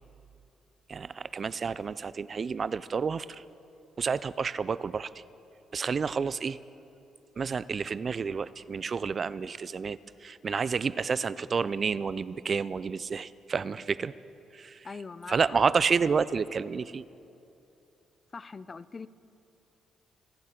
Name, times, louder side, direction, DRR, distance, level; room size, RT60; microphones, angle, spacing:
voice 1, 0.9-3.4 4.0-5.2 5.7-6.6 7.4-14.1 14.5-14.9 15.3-17.0, right 5 dB, 40° right, 17 dB, 0.3 m, -30 dB
voice 2, 14.8-15.6 18.3-19.1, left 4 dB, 35° left, 17 dB, 0.4 m, -42 dB
26.0 x 11.5 x 3.8 m, 2.7 s
cardioid pair, 90°, 0 cm